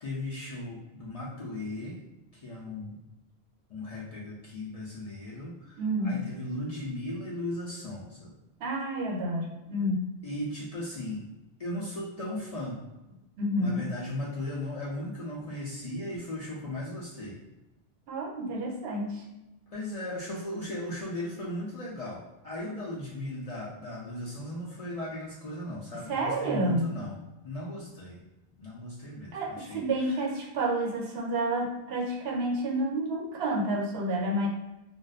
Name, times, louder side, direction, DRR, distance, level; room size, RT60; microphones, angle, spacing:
voice 1, 0.0-2.0 2.3-3.0 3.7-8.3 10.2-11.2 11.6-12.8 13.6-17.4 19.7-28.2 28.6-30.2, left 1 dB, 50° left, -6 dB, 0.5 m, -37 dB
voice 2, 5.8-6.1 8.6-10.0 13.4-13.9 18.1-19.2 26.1-26.9 29.3-34.5, right 1 dB, 75° right, 0 dB, 0.8 m, -29 dB
2.5 x 2.2 x 2.3 m, 1.0 s
omnidirectional pair, 1.1 m